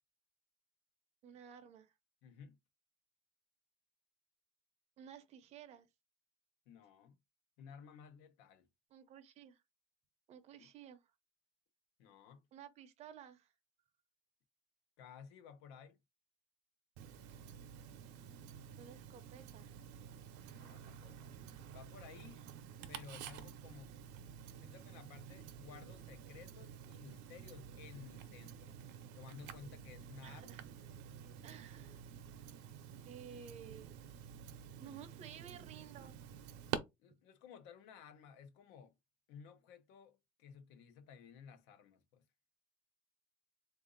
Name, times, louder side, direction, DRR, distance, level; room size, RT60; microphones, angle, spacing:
voice 1, 1.2-1.9 5.0-5.9 8.9-9.6 10.3-11.1 12.5-13.5 18.8-19.7 30.2-30.7 31.4-32.0 33.1-34.1 34.8-36.2, right 8 dB, 40° right, 0.6 m, -54 dB
voice 2, 2.2-2.6 6.7-7.2 7.6-8.7 10.6-10.7 12.0-12.5 15.0-16.0 20.5-21.4 21.7-22.4 22.9-24.0 24.6-28.8 29.1-30.6 37.0-38.9 39.3-42.2, left 7 dB, 80° left, 0.9 m, -56 dB
Tick-tock, 17.0-36.8, right 9 dB, 80° right, 0.7 m, -50 dB
3.8 x 2.6 x 3.8 m
cardioid pair, 180°, 18 cm